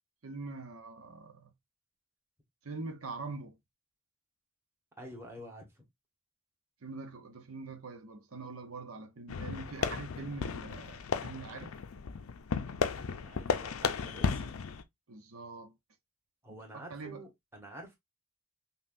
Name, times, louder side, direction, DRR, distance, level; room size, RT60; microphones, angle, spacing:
voice 1, 0.2-1.5 2.6-3.6 6.8-11.7 15.1-15.7 16.5-17.2, right 3 dB, 90° right, 0.8 m, -43 dB
voice 2, 5.0-5.7 13.0-14.5 16.4-18.0, right 1 dB, 10° right, 1.2 m, -48 dB
sound 1, 9.3-14.8, left 6 dB, 90° left, 0.5 m, -34 dB
5.5 x 2.3 x 2.6 m
head